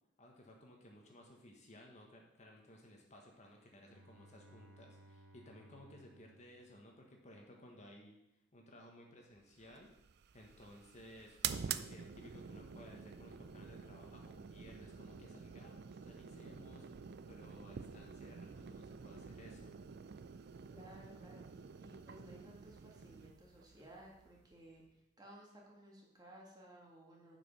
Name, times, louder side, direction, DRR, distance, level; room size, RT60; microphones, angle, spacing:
voice 1, 0.2-8.2 8.5-9.9 10.3-19.7, left 1 dB, 40° left, 1 dB, 1.3 m, -58 dB
Bowed string instrument, 3.8-7.5, right 1 dB, 85° right, 1.1 m, -62 dB
sound 1, 9.6-24.9, right 7 dB, 60° right, 0.4 m, -48 dB
voice 2, 20.7-27.4, right 1 dB, 20° right, -3 dB, 2.0 m, -58 dB
7.2 x 6.1 x 5.4 m, 0.86 s
head